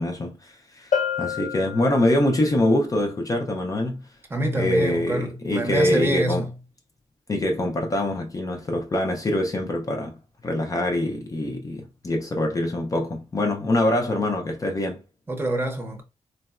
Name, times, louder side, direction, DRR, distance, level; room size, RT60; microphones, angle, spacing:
voice 1, 0.0-4.1 4.6-6.4 7.3-15.0, left 1 dB, 30° left, 0.5 m, -24 dB
Bell, 0.9-2.5, left 7 dB, 85° left, 0.6 m, -28 dB
voice 2, 4.3-6.5 15.3-16.0, right 1 dB, 20° right, 0.7 m, -26 dB
3.8 x 2.1 x 2.3 m
wide cardioid pair, 135°, 12 cm